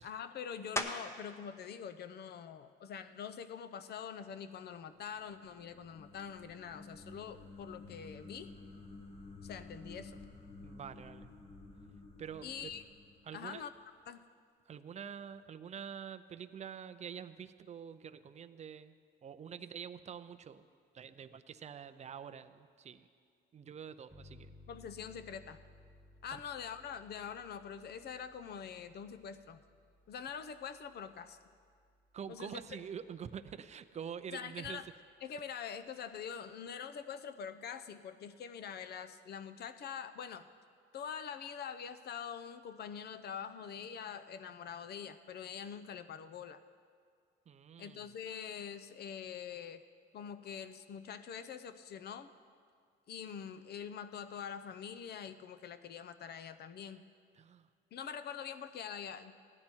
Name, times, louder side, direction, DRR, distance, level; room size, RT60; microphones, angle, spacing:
voice 1, 0.0-8.5 9.4-10.2 12.4-12.8 13.3-13.7 14.1-14.2 24.7-25.6 26.2-29.6 30.1-31.4 32.3-32.6 34.3-34.9 35.2-40.5 40.9-46.6 47.8-49.8 50.1-52.3 53.1-57.0 57.9-59.3, left 7 dB, 50° left, 12 dB, 0.6 m, -44 dB
sound 1, 0.8-1.3 1.9-6.3 6.8-12.0 12.3-17.9, left 1 dB, 15° left, 0.8 m, -49 dB
sound 2, 4.7-13.9, left 3 dB, 30° left, 1.2 m, -53 dB
voice 2, 10.6-11.3 12.2-12.8 13.3-13.6 14.7-19.0 19.2-20.7 20.9-23.1 23.5-24.5 26.3-26.4 32.1-34.8 47.5-48.1 57.4-57.7, right 8 dB, 35° right, 10 dB, 0.5 m, -46 dB
sound 3, 24.1-33.4, left 2 dB, 10° right, 1.3 m, -62 dB
15.5 x 11.0 x 4.5 m, 2.1 s
cardioid pair, 110°, 21 cm